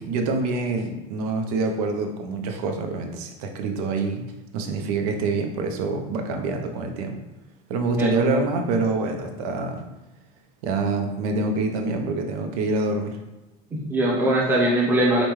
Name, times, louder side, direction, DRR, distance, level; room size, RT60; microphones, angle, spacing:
voice 1, 0.0-4.2 4.5-7.2 7.7-9.9 10.6-13.2, right 3 dB, 85° right, 4 dB, 0.6 m, -26 dB
voice 2, 7.9-8.4 13.7-15.2, right 1 dB, 10° right, -3 dB, 0.6 m, -21 dB
5.1 x 2.2 x 3.1 m, 1.0 s
cardioid pair, 170°, 19 cm